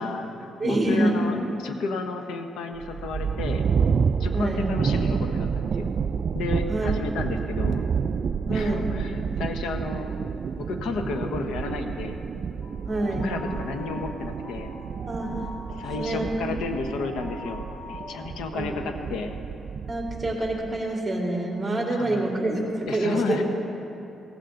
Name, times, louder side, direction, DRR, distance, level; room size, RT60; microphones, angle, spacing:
voice 1, 0.0-3.6 4.2-5.9 6.3-7.8 8.5-10.1 10.6-12.2 13.2-14.7 15.8-19.3 21.9-22.5 22.9-23.4, left 4 dB, 85° left, 5 dB, 1.2 m, -32 dB
voice 2, 0.6-1.2 4.3-4.7 6.7-6.9 8.5-8.9 12.9-13.3 15.1-15.5 16.0-16.3 18.5-18.7 19.9-23.4, right 1 dB, 15° right, -2 dB, 3.6 m, -26 dB
sound 1, 2.7-20.8, right 6 dB, 50° right, 0.4 m, -29 dB
sound 2, 12.6-18.3, left 1 dB, 70° left, 2.9 m, -42 dB
16.5 x 15.5 x 3.9 m, 2.9 s
cardioid pair, 90°, 0 cm